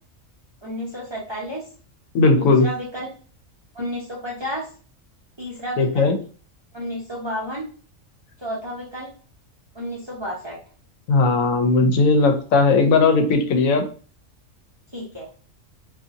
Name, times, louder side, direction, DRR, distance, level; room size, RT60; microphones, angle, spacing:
voice 1, 0.6-1.6 2.4-3.1 3.7-4.7 5.4-6.1 6.7-7.6 8.4-9.1 9.7-10.6 14.9-15.3, equal, 30° right, -5 dB, 0.5 m, -31 dB
voice 2, 2.1-2.7 5.8-6.2 11.1-13.8, left 3 dB, 85° left, 6 dB, 1.0 m, -17 dB
2.7 x 2.5 x 2.5 m, 0.40 s
omnidirectional pair, 1.4 m